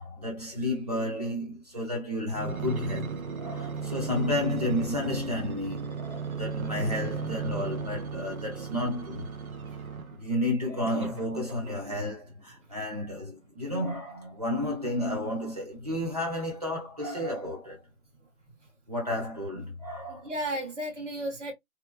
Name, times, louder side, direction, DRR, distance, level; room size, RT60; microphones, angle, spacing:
voice 1, 0.0-3.1 3.4-9.3 10.1-17.8 18.9-20.3, left 1 dB, 30° right, 0.8 m, -32 dB
sound 1, 2.3-10.3 10.9-12.1 12.7-12.8, right 5 dB, 90° right, 0.7 m, -36 dB
voice 2, 18.2-18.6 20.1-21.5, right 1 dB, 60° right, 1.3 m, -35 dB
2.9 x 2.2 x 2.3 m
hypercardioid pair, 175°, 42 cm